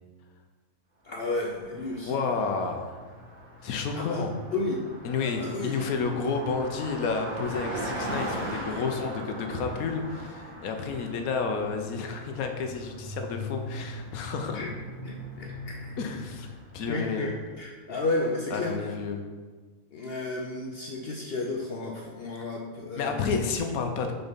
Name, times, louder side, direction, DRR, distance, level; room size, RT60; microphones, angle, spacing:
voice 1, 1.0-2.4 3.9-4.2 4.5-4.8 5.2-5.8 14.5-14.7 15.0-16.0 16.9-18.9 19.9-23.4, left 2 dB, 55° left, 0 dB, 0.7 m, -32 dB
Car passing by, 1.3-17.3, equal, 80° right, 2.1 m, -39 dB
voice 2, 2.0-2.9 3.6-4.3 5.0-14.6 16.0-17.3 18.5-19.2 23.0-24.1, left 5 dB, 80° left, 5 dB, 1.2 m, -31 dB
5.8 x 4.0 x 5.2 m, 1.4 s
omnidirectional pair, 1.5 m